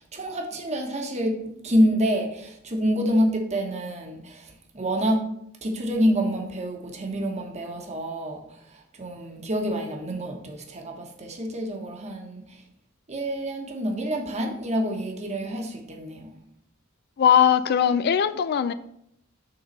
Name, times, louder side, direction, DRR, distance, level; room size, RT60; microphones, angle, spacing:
voice 1, 0.0-5.3 5.6-12.6 13.1-16.4, equal, 30° right, 1.1 m, -27 dB
voice 2, 17.2-18.7, left 8 dB, 50° left, 0.3 m, -20 dB
6.8 x 3.9 x 5.3 m
head